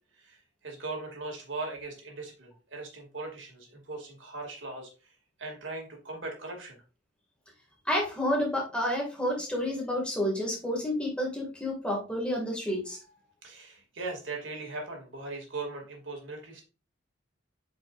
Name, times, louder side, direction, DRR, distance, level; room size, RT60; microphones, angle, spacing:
voice 1, 0.1-6.8 13.4-16.6, right 3 dB, 85° right, 0 dB, 2.6 m, -39 dB
voice 2, 7.9-13.0, left 1 dB, 5° left, -2 dB, 2.2 m, -30 dB
8.1 x 5.3 x 2.6 m, 0.34 s
head